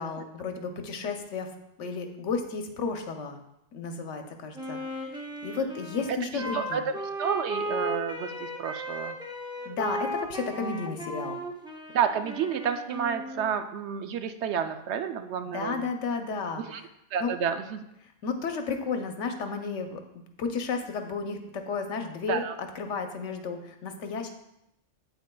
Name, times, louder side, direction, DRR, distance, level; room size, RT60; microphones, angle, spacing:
voice 1, 0.0-1.5 1.8-3.4 3.7-6.9 9.7-11.4 15.5-16.6 17.2-17.3 18.2-20.0 20.4-24.3, left 4 dB, 85° left, 5 dB, 1.1 m, -33 dB
Wind instrument woodwind instrument, 4.5-13.5, equal, 5° right, 0.4 m, -36 dB
voice 2, 6.3-6.9 7.2-9.2 11.9-15.9 16.6-16.8 17.1-17.8 22.3-22.5, right 7 dB, 70° right, 8 dB, 0.8 m, -30 dB
8.1 x 8.0 x 2.2 m, 0.84 s
omnidirectional pair, 1.2 m